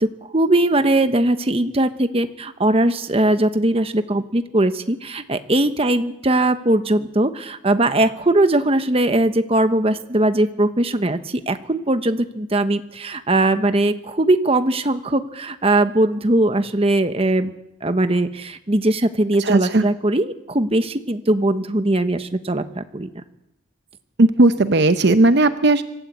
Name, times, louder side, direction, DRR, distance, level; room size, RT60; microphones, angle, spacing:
voice 1, 0.0-17.5 17.8-23.2, right 1 dB, 30° right, 10 dB, 1.1 m, -20 dB
voice 2, 19.4-19.8 24.2-25.8, right 2 dB, 55° right, 10 dB, 0.8 m, -15 dB
26.0 x 13.0 x 8.4 m, 0.86 s
head